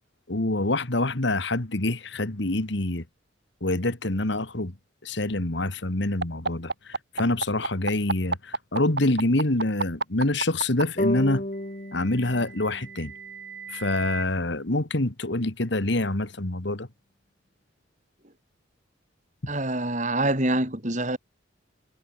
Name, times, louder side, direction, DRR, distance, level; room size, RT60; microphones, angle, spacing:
voice 1, 0.3-3.0 3.6-4.7 5.0-11.4 11.9-13.1 13.7-16.9, left 2 dB, 60° left, 1.9 m, -26 dB
sound 1, 6.2-10.8 12.0-14.2, right 3 dB, 55° right, 5.5 m, -31 dB
sound 2, 11.0-14.2, left 1 dB, 40° left, 2.4 m, -33 dB
voice 2, 19.5-21.2, right 1 dB, 40° right, 5.3 m, -25 dB
head